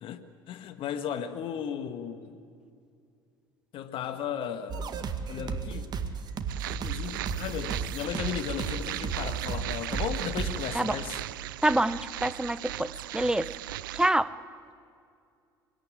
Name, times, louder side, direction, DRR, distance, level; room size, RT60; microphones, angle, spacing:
voice 1, 0.0-2.4 3.7-4.9 5.3-5.9 6.7-11.2, left 8 dB, 50° left, 10 dB, 1.7 m, -35 dB
sound 1, 4.7-10.7, right 6 dB, 40° right, 2.1 m, -34 dB
sound 2, 6.5-14.1, right 15 dB, 70° right, 0.5 m, -38 dB
voice 2, 11.6-13.5 13.9-14.3, right 1 dB, 5° right, 16 dB, 0.9 m, -26 dB
24.5 x 22.0 x 8.6 m, 2.4 s
figure-of-eight pair, 65°, 11 cm